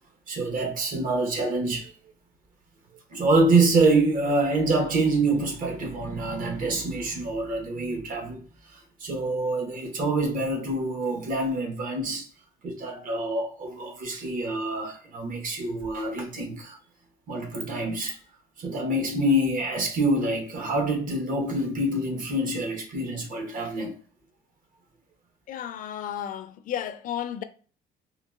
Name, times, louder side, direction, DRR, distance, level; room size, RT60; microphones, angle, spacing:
voice 1, 0.3-1.9 3.1-8.4 8.7-12.3 12.6-16.8 17.3-18.2 18.6-23.9, right 2 dB, 55° right, 1.0 m, -26 dB
voice 2, 25.5-27.4, left 10 dB, 55° left, 0.4 m, -33 dB
3.7 x 2.3 x 2.3 m
cardioid pair, 110°, 17 cm